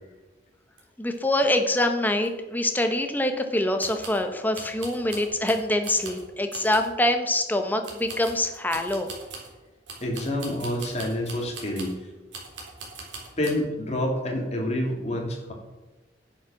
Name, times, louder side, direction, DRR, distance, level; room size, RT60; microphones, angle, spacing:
sound 1, 0.8-0.9 1.1-1.2 1.6-1.7 2.2-2.3 3.8-4.2 4.5-6.2 6.5-7.0 7.8-9.5 9.9-12.0 12.3-13.6, right 3 dB, 90° right, 3.7 m, -41 dB
voice 1, 1.0-9.1, left 1 dB, 10° left, 6 dB, 1.1 m, -25 dB
voice 2, 10.0-12.0 13.4-15.5, left 1 dB, 35° left, 1 dB, 2.7 m, -28 dB
10.5 x 7.5 x 6.3 m, 1.2 s
head